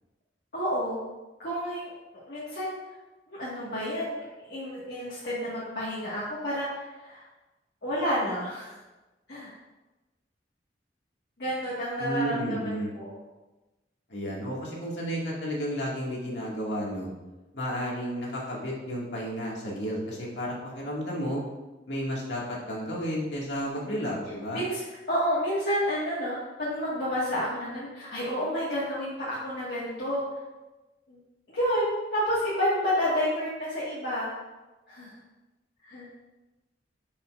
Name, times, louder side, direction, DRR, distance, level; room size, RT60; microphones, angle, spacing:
voice 1, 0.5-1.0 1.4-1.9 2.2-2.8 3.3-4.2 4.4-6.7 7.0-7.2 7.8-8.8 9.3-9.5 11.4-13.1 23.7-24.0 24.5-24.8 25.1-30.2 31.1-31.2 31.5-34.3 34.9-35.1 35.8-36.1, equal, 60° left, -10 dB, 1.8 m, -30 dB
voice 2, 12.0-12.9 14.1-17.1 17.5-21.4 21.9-24.6, equal, 80° left, -4 dB, 2.1 m, -32 dB
10.5 x 5.6 x 2.6 m, 1.1 s
head